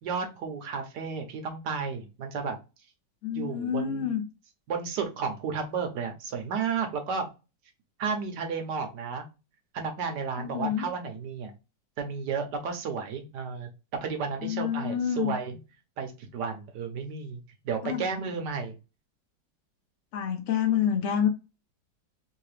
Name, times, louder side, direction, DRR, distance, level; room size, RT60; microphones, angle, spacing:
voice 1, 0.0-2.6 3.3-4.1 4.7-7.3 8.0-9.3 9.7-11.5 12.0-13.7 14.0-15.5 16.0-17.4 17.6-18.7, right 5 dB, 70° right, 1.4 m, -32 dB
voice 2, 3.2-4.3 10.4-10.9 14.4-15.3 17.8-18.2 20.1-21.3, left 9 dB, 75° left, 0.7 m, -28 dB
3.4 x 2.8 x 3.2 m
omnidirectional pair, 1.9 m